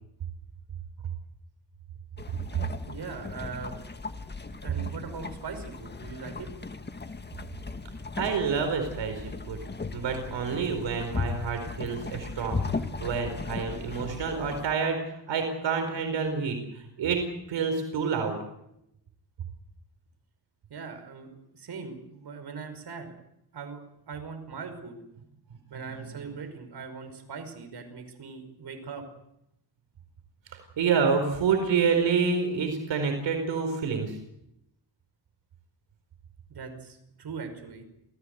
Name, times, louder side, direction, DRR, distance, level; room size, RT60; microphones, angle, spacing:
sound 1, 2.2-14.7, left 4 dB, 25° left, 1.7 m, -37 dB
voice 1, 2.9-3.8 4.6-6.5 20.7-23.1 23.5-25.0 25.7-29.0 36.5-37.8, right 5 dB, 60° right, 7 dB, 5.5 m, -40 dB
voice 2, 8.2-9.6 9.9-12.6 13.0-18.4 30.5-34.2, right 5 dB, 85° right, 5 dB, 4.6 m, -28 dB
27.5 x 18.0 x 8.1 m, 0.81 s
cardioid pair, 110°, 43 cm